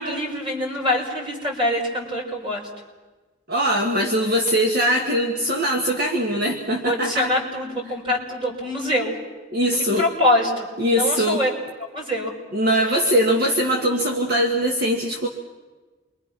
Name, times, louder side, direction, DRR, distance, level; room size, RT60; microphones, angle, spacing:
voice 1, 0.0-2.7 6.8-9.1 9.7-11.5 11.9-12.3 13.9-14.0, left 1 dB, 25° right, -1 dB, 5.0 m, -24 dB
voice 2, 3.5-7.3 9.5-10.1 10.8-11.5 12.5-15.3, equal, 55° right, 1 dB, 1.7 m, -21 dB
29.0 x 23.5 x 6.1 m, 1.3 s
head